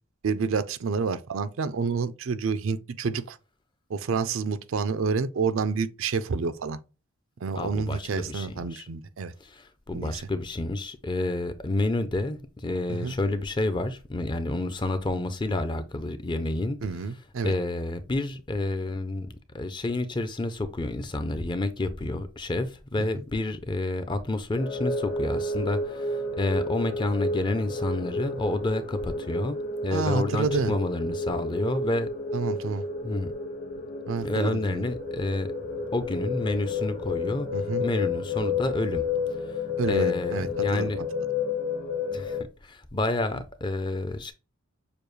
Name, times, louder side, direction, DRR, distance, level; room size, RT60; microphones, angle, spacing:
voice 1, 0.2-3.4 3.9-6.8 7.4-9.3 9.9-10.2 12.9-13.1 16.8-17.5 23.0-23.1 29.9-30.8 32.3-32.8 34.1-34.8 37.5-37.8 39.8-40.9, right 5 dB, 70° right, 0.5 m, -29 dB
voice 2, 7.5-8.9 9.4-16.8 17.4-29.6 29.8-32.1 33.0-33.3 34.2-35.5 35.9-37.5 37.8-39.6 39.9-41.0 42.1-44.3, left 2 dB, 25° left, 0.5 m, -29 dB
sound 1, 24.6-42.4, left 3 dB, 45° left, 0.9 m, -31 dB
6.8 x 2.3 x 3.1 m
head